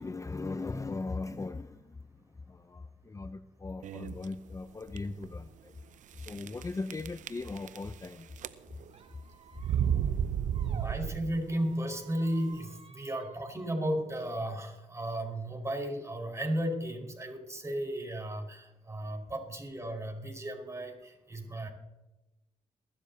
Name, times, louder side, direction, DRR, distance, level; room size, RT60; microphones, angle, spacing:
voice 1, 0.0-5.8 6.2-8.3, left 3 dB, 25° left, 11 dB, 0.6 m, -39 dB
sound 1, 3.8-4.3 4.9-5.0 5.2-5.3 6.2-6.6 6.9-8.1 8.4-8.9 9.6-11.5, right 9 dB, 70° right, 0.7 m, -31 dB
Squeak, 8.9-10.9 11.4-13.5, right 5 dB, 50° right, 1.9 m, -54 dB
voice 2, 10.6-21.7, right 1 dB, 20° right, 3 dB, 4.8 m, -34 dB
21.0 x 12.5 x 2.8 m, 1.0 s
supercardioid pair, 50°, 13 cm